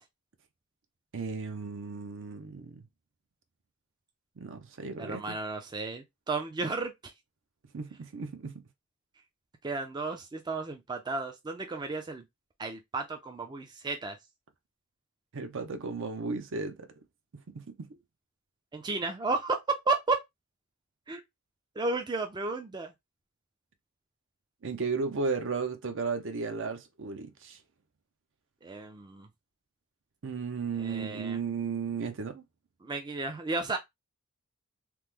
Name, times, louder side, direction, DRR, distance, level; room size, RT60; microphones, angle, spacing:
voice 1, 1.1-2.9 4.4-5.4 7.7-8.6 15.3-16.9 17.5-18.0 24.6-27.6 30.2-32.4, right 4 dB, 60° right, 0.6 m, -35 dB
voice 2, 5.0-7.1 9.6-12.2 12.6-14.2 18.7-19.6 19.9-20.2 21.1-21.2 21.8-22.9 28.6-29.3 30.8-31.4 32.8-33.8, right 3 dB, 20° right, 0.4 m, -33 dB
3.0 x 2.1 x 3.4 m
head